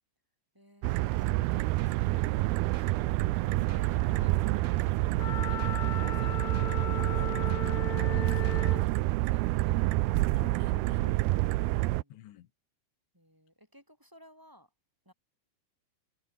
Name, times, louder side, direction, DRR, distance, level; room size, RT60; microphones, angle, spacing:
voice 1, 0.5-2.2 2.5-4.4 4.8-7.6 8.1-10.3 13.1-14.7 15.0-15.1, equal, 5° right, 6.6 m, -57 dB
sound 1, 0.8-12.0, right 19 dB, 90° right, 2.1 m, -28 dB
sound 2, 1.3-8.9, right 7 dB, 40° right, 3.4 m, -51 dB
Wind instrument woodwind instrument, 5.2-8.9, left 11 dB, 65° left, 4.0 m, -38 dB
voice 2, 8.1-8.9 10.4-11.2 12.1-12.5, left 13 dB, 80° left, 4.1 m, -50 dB
omnidirectional pair, 5.4 m